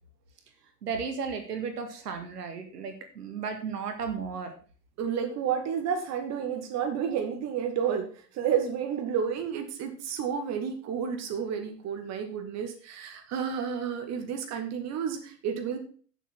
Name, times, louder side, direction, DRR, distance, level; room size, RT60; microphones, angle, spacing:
voice 1, 0.8-4.5, right 5 dB, 70° right, 7 dB, 2.1 m, -34 dB
voice 2, 5.0-15.8, right 7 dB, 35° right, 5 dB, 2.3 m, -31 dB
9.1 x 7.4 x 6.0 m, 0.41 s
figure-of-eight pair, 100°, 48 cm